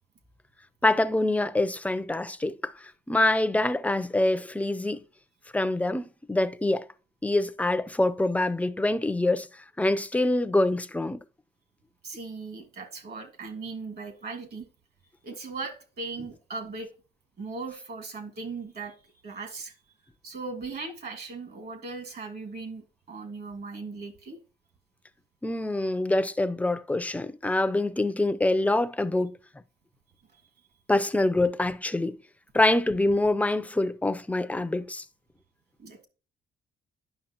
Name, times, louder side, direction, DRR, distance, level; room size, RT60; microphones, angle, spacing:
voice 1, 0.8-5.0 5.5-6.9 7.2-9.5 9.8-11.2 25.4-29.4 30.9-32.2 32.5-35.0, left 2 dB, 5° left, 0.5 m, -25 dB
voice 2, 12.0-14.6 15.2-16.9 17.4-19.0 19.2-19.7 20.2-24.4 30.3-30.4 35.8-36.1, right 4 dB, 50° right, 1.8 m, -38 dB
10.0 x 5.8 x 2.9 m
cardioid pair, 90°, 20 cm